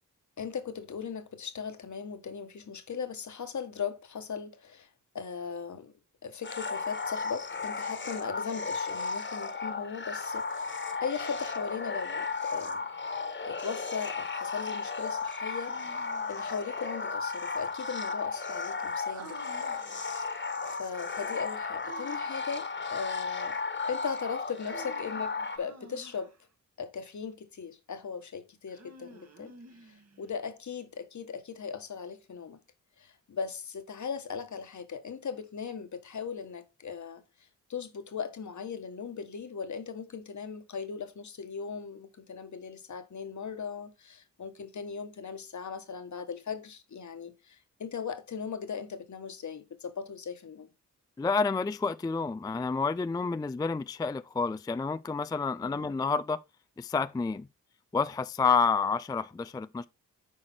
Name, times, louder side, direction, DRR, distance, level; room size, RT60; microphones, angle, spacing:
voice 1, 0.4-4.9 5.1-5.9 6.2-12.8 13.4-19.4 20.6-23.6 23.8-26.3 26.8-29.5 29.8-32.6 33.0-37.2 37.7-50.7 55.6-55.9, left 6 dB, 60° left, 1.3 m, -38 dB
sound 1, 6.4-25.6, left 4 dB, 35° left, 1.4 m, -35 dB
Human voice, 15.6-16.5 19.0-20.4 21.8-22.6 24.6-26.4 28.7-30.3, right 3 dB, 50° right, 1.8 m, -50 dB
voice 2, 51.2-56.4 56.8-57.5 57.9-59.9, left 4 dB, 15° left, 0.3 m, -29 dB
8.7 x 4.9 x 4.3 m
cardioid pair, 75°, 33 cm